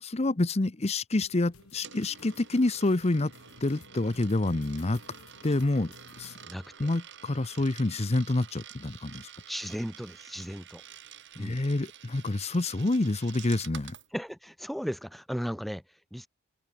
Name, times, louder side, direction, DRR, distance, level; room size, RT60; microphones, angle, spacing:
voice 1, 0.0-3.3 3.6-5.0 5.4-5.9 6.2-6.3 6.8-9.3 11.4-14.0, left 2 dB, 30° left, 0.8 m, -27 dB
sound 1, 1.2-6.5, left 3 dB, 85° left, 2.3 m, -54 dB
Coin (dropping), 1.3-14.1, right 9 dB, 55° right, 7.2 m, -50 dB
voice 2, 6.4-6.9 9.5-10.8 11.4-11.6 14.1-16.3, equal, ahead, 2.0 m, -36 dB
head